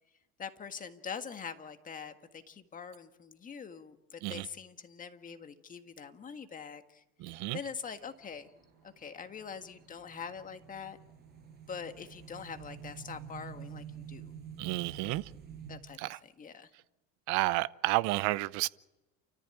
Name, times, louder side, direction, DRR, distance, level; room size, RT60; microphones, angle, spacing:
voice 1, 0.4-8.5 9.0-11.0 11.7-14.3 15.7-16.7, left 6 dB, 25° left, 1.6 m, -44 dB
voice 2, 7.2-7.6 14.6-15.2 16.0-16.2 17.3-18.7, right 19 dB, 80° right, 0.7 m, -31 dB
sound 1, 7.6-15.8, right 8 dB, 35° right, 6.2 m, -49 dB
29.0 x 14.0 x 9.0 m
cardioid pair, 135°, 29 cm